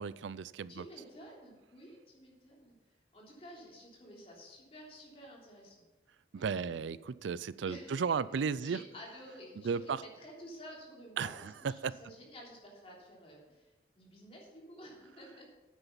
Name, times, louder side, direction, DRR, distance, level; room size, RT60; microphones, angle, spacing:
voice 1, 0.0-0.8 6.3-8.8 9.6-10.0 11.2-11.5 11.8-11.9, right 6 dB, 85° right, 18 dB, 0.4 m, -34 dB
voice 2, 0.7-2.7 3.1-5.9 6.3-6.8 7.6-15.5, equal, 30° left, -2 dB, 3.2 m, -52 dB
9.8 x 9.0 x 5.6 m, 1.2 s
head